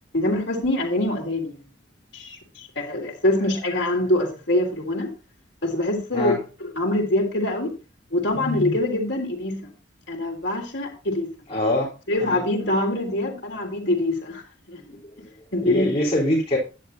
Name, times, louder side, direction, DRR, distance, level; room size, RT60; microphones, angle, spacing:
voice 1, 0.1-1.6 2.1-5.1 5.6-7.7 8.1-9.7 10.1-11.3 12.1-15.0 15.5-15.9, left 1 dB, 65° left, 3.5 m, -24 dB
voice 2, 11.5-11.9 12.2-12.4 15.6-16.6, left 1 dB, 30° left, 3.9 m, -23 dB
11.0 x 10.5 x 2.8 m
head